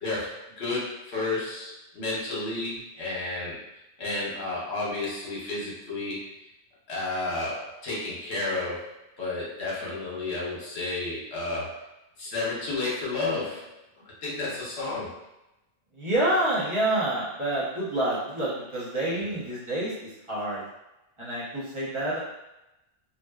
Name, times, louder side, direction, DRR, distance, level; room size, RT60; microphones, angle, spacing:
voice 1, 0.0-3.6 4.0-6.2 6.9-8.9 9.2-11.8 12.2-13.8 14.2-15.1 19.1-19.3, left 2 dB, 65° left, -5 dB, 1.1 m, -31 dB
voice 2, 15.9-20.6 21.2-22.2, right 1 dB, 30° right, -9 dB, 0.8 m, -28 dB
2.6 x 2.1 x 2.2 m, 0.93 s
omnidirectional pair, 1.2 m